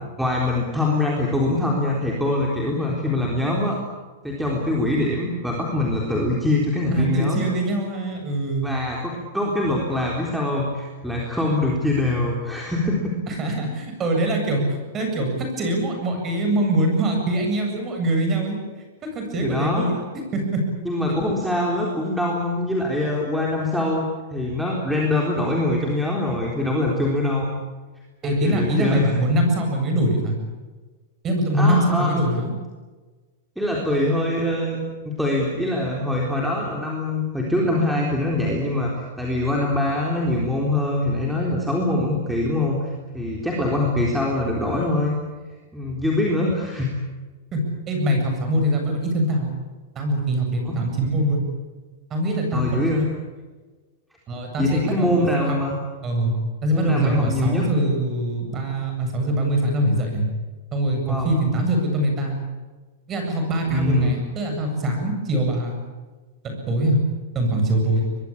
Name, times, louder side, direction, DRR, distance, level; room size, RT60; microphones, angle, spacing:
voice 1, 0.2-3.8 4.2-7.5 8.6-13.1 19.4-19.9 20.8-24.0 24.3-27.5 28.2-29.2 31.5-32.1 33.6-34.8 35.2-38.9 39.2-45.2 45.7-46.9 50.6-50.8 52.5-53.1 54.6-55.7 56.7-57.7 61.1-61.3 63.7-64.1, left 1 dB, ahead, -3 dB, 3.9 m, -23 dB
voice 2, 6.9-8.7 13.3-18.6 19.0-20.0 20.3-20.6 28.2-30.3 31.2-32.6 47.5-49.5 49.9-51.4 52.1-52.7 54.3-55.2 55.4-55.6 56.0-56.3 56.6-60.3 60.7-62.5 63.1-65.8 66.4-67.0 67.3-68.0, right 1 dB, 20° right, 3 dB, 8.0 m, -23 dB
24.0 x 22.0 x 8.7 m, 1.3 s
supercardioid pair, 155°, 0 cm